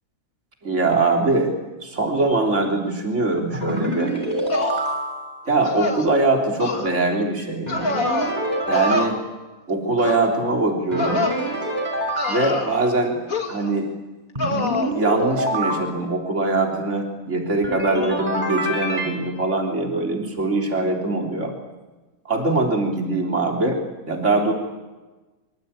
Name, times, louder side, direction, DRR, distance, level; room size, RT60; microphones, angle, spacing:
voice 1, 0.6-1.5 1.8-4.1 5.5-8.0 8.7-9.2 9.7-11.2 12.3-13.2 13.5-13.9 14.9-21.5 22.3-23.8 24.1-24.5, right 2 dB, 55° right, 1 dB, 3.9 m, -22 dB
sound 1, 3.5-5.4 7.7-9.2 10.9-12.5 14.3-15.8 17.6-19.1, right 1 dB, 30° right, 6.7 m, -26 dB
sound 2, 4.5-4.9 5.6-6.1 6.6-6.9 7.7-8.3 8.7-9.1 10.0-10.3 11.0-11.4 12.2-12.9 13.3-13.7 14.4-14.9, left 2 dB, 75° left, 2.9 m, -25 dB
24.5 x 24.5 x 8.9 m, 1.2 s
omnidirectional pair, 1.5 m